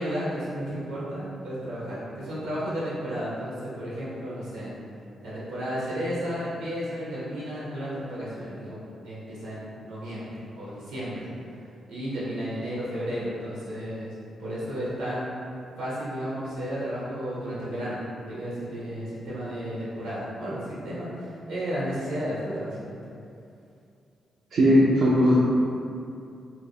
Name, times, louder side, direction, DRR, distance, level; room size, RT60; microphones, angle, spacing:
voice 1, 0.0-4.7 5.2-11.3 11.9-14.1 14.4-15.3 15.8-23.0, equal, 85° right, -9 dB, 0.9 m, -33 dB
voice 2, 24.5-25.4, equal, 65° right, -7 dB, 0.4 m, -18 dB
2.4 x 2.0 x 3.3 m, 2.6 s
hypercardioid pair, 45°, 0 cm